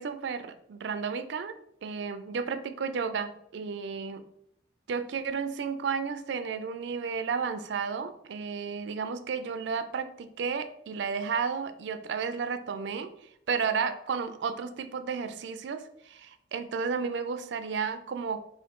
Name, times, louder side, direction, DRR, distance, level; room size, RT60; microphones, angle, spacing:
voice 1, 0.0-4.2 4.9-13.1 13.5-18.4, right 5 dB, 70° right, 10 dB, 0.3 m, -32 dB
3.7 x 2.6 x 3.5 m, 0.71 s
head